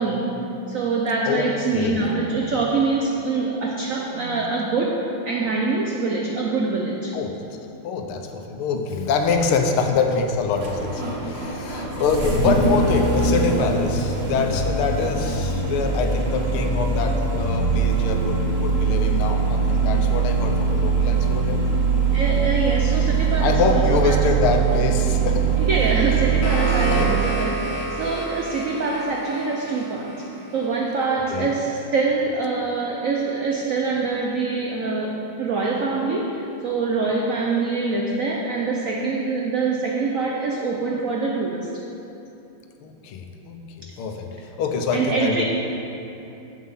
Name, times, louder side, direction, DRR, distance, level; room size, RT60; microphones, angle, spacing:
voice 1, 0.0-7.2 22.1-24.2 25.6-41.7 44.9-45.4, right 3 dB, 85° right, 0 dB, 0.7 m, -24 dB
voice 2, 1.7-2.1 7.1-7.3 7.8-21.6 23.4-25.5 26.7-27.1 31.3-31.6 42.8-44.3 44.6-45.4, left 4 dB, 85° left, 4 dB, 1.7 m, -25 dB
Engine starting, 8.9-27.3, right 5 dB, 40° right, 1.0 m, -22 dB
sound 1, 26.0-31.1, right 1 dB, 50° left, 1.5 m, -31 dB
7.6 x 7.3 x 5.5 m, 2.9 s
omnidirectional pair, 2.3 m